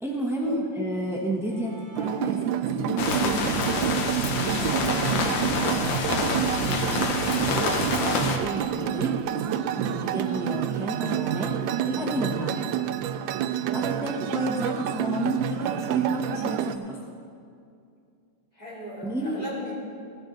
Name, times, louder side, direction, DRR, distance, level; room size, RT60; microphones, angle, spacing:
voice 1, 0.0-5.4 5.6-7.2 8.0-9.2 9.8-12.7 13.7-17.0 19.0-19.5, right 1 dB, 5° right, -1 dB, 0.4 m, -32 dB
Bowed string instrument, 1.4-7.2, left 2 dB, 20° right, 1.6 m, -44 dB
sound 1, 1.9-16.8, right 10 dB, 80° right, 1.3 m, -28 dB
sound 2, 3.0-8.4, left 4 dB, 75° left, 1.7 m, -27 dB
voice 2, 13.7-14.2 18.5-19.7, equal, 20° left, -8 dB, 3.7 m, -38 dB
15.0 x 10.5 x 3.9 m, 2.4 s
omnidirectional pair, 2.1 m